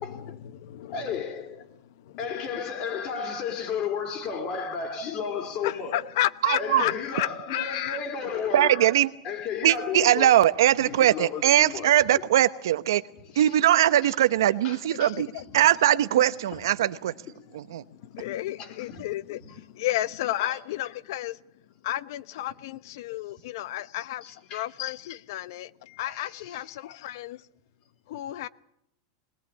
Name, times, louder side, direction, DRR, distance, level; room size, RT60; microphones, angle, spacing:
voice 1, 0.0-1.2 2.0-2.2 5.6-8.0 14.9-15.4 17.8-21.4 21.8-27.5 28.1-28.5, left 14 dB, 65° left, 0.8 m, -32 dB
voice 2, 0.9-1.7 2.2-6.0 6.6-9.0 9.2-10.3 10.8-12.2 13.3-13.6 14.0-14.1 14.6-14.8 15.5-15.6 16.5-16.6 18.2-18.3 18.6-19.1 19.4-19.6 20.4-20.6 24.2-24.7 26.0-26.6, left 6 dB, 40° left, 3.8 m, -33 dB
voice 3, 6.4-6.8 8.5-9.1 9.6-13.0 13.4-15.3 15.5-17.1 17.5-17.8, right 12 dB, 85° right, 0.9 m, -21 dB
20.5 x 19.0 x 8.5 m
supercardioid pair, 150°, 2 cm